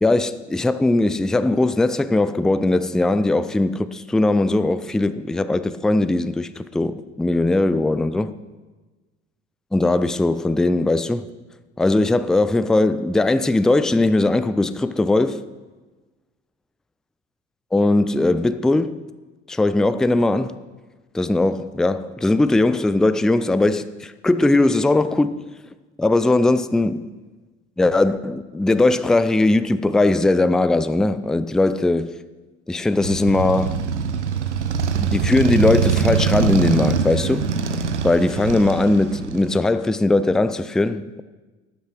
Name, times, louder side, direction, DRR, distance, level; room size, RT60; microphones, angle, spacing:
voice 1, 0.0-8.3 9.7-11.3 11.8-15.4 17.7-19.0 19.5-20.6 21.1-25.5 26.0-27.1 27.8-32.2 32.7-33.8 35.0-41.2, left 2 dB, ahead, 0.4 m, -19 dB
Motorcycle, 33.0-39.7, right 6 dB, 90° right, 0.6 m, -23 dB
12.0 x 8.4 x 5.9 m
figure-of-eight pair, 65°, 34 cm